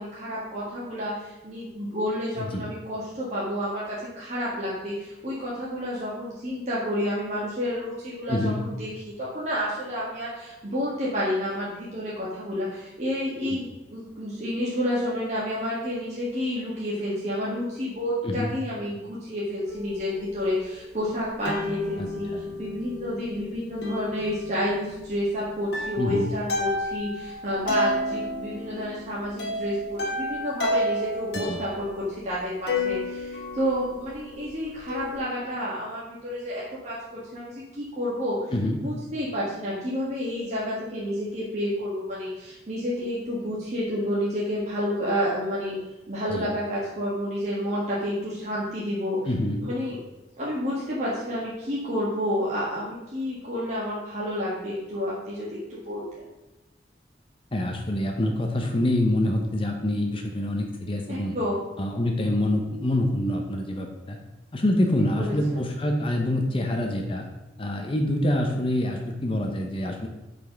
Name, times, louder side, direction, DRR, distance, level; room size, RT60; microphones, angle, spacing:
voice 1, 0.0-8.9 9.2-22.3 22.6-45.8 46.1-49.3 49.6-50.0 50.4-56.0 61.1-61.6 65.2-65.6, equal, 40° right, -7 dB, 1.7 m, -30 dB
voice 2, 8.3-8.6 18.2-18.5 22.0-22.4 26.0-26.3 31.5-31.6 38.5-38.8 46.3-46.5 49.3-49.6 57.5-61.4 61.8-64.2 64.5-67.3 67.6-70.1, left 1 dB, 30° left, 3 dB, 0.8 m, -26 dB
sound 1, 19.7-21.0 21.4-31.9 32.7-35.2, left 1 dB, 65° left, 1.6 m, -32 dB
6.1 x 5.2 x 5.8 m, 0.99 s
head